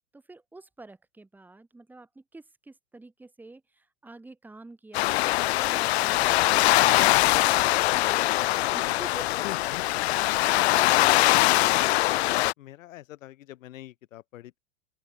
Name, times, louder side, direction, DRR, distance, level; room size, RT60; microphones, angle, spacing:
voice 1, 0.1-10.0 10.5-11.8, right 2 dB, 5° right, 3.3 m, -47 dB
sound 1, 4.9-12.5, left 17 dB, 50° left, 0.7 m, -22 dB
voice 2, 9.4-9.8 12.6-14.6, left 14 dB, 70° left, 2.3 m, -43 dB
open air
supercardioid pair, 170°, 41 cm